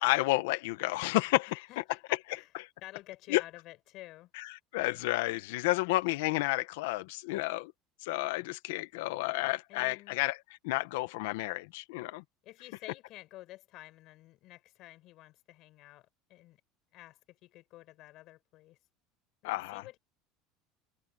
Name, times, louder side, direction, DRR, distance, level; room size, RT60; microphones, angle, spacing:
voice 1, 0.0-1.7 3.3-3.4 4.3-7.7 8.0-10.4 10.6-12.2 19.4-19.8, left 19 dB, 80° left, 1.0 m, -31 dB
voice 2, 1.7-2.5 2.8-4.3 9.7-10.2 12.4-16.6 16.9-18.8 19.4-20.0, left 17 dB, 40° left, 7.0 m, -51 dB
cardioid pair, 180°, 0 cm